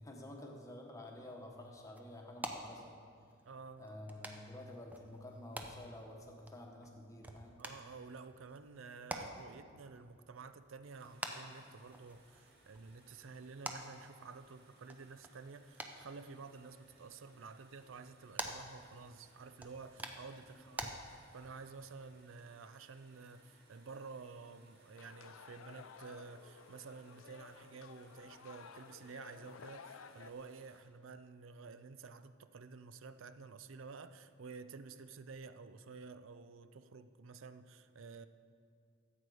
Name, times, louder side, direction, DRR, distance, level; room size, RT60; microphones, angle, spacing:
voice 1, 0.0-2.9 3.8-7.6 20.5-20.7, left 1 dB, 15° left, 1.3 m, -50 dB
sound 1, 1.1-20.9, right 1 dB, 10° right, 0.6 m, -50 dB
voice 2, 3.5-4.1 7.6-38.3, right 4 dB, 70° right, 0.5 m, -51 dB
sound 2, 10.8-30.8, right 2 dB, 50° right, 2.1 m, -68 dB
sound 3, 25.0-30.3, left 6 dB, 75° left, 0.4 m, -55 dB
13.5 x 8.0 x 4.9 m
head